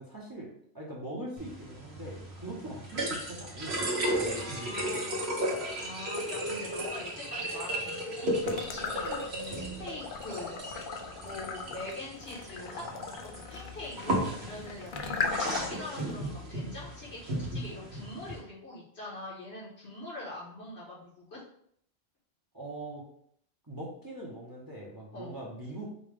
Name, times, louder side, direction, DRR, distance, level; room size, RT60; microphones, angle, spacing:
voice 1, 0.0-5.0 22.5-23.1 23.7-25.9, right 1 dB, 20° right, -3 dB, 0.8 m, -41 dB
sound 1, 1.4-18.4, right 1 dB, 80° right, 1.3 m, -35 dB
voice 2, 4.3-10.8 11.2-12.8 13.1-21.4 25.1-25.4, left 2 dB, 80° left, -8 dB, 1.5 m, -43 dB
sound 2, 8.4-9.6 10.0-15.9, left 5 dB, 60° left, 0.6 m, -37 dB
5.2 x 2.3 x 3.4 m, 0.67 s
omnidirectional pair, 1.1 m